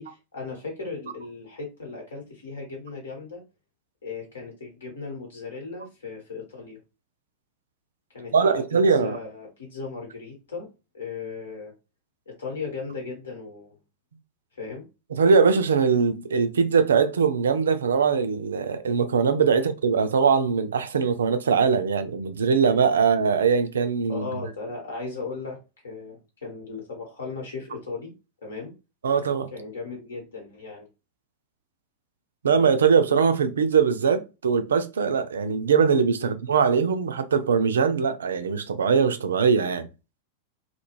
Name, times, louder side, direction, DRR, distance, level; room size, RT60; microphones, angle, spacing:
voice 1, 0.0-3.4 4.0-6.8 8.1-10.7 10.9-11.7 12.3-13.7 14.5-14.8 19.5-19.6 24.1-25.6 25.8-28.1 28.4-28.7 29.5-30.9 36.2-36.4, left 4 dB, 65° left, 1.1 m, -37 dB
voice 2, 8.3-9.2 15.2-24.3 29.0-29.5 32.4-39.9, right 6 dB, 65° right, 0.3 m, -21 dB
2.3 x 2.0 x 3.0 m
figure-of-eight pair, 90°, 0 cm